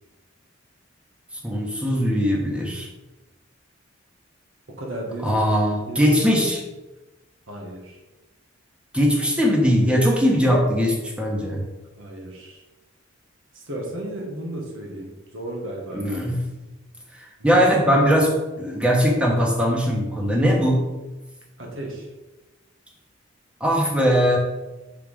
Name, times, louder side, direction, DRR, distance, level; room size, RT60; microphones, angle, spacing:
voice 1, 1.4-2.9 5.2-6.6 8.9-11.6 15.9-16.4 17.4-20.8 23.6-24.4, equal, 5° right, -1 dB, 1.2 m, -20 dB
voice 2, 4.7-5.3 5.9-6.2 7.5-8.0 12.0-12.6 13.5-16.3 17.4-17.9 21.6-22.1, right 1 dB, 70° right, 0 dB, 1.2 m, -34 dB
5.4 x 4.2 x 5.0 m, 1.1 s
head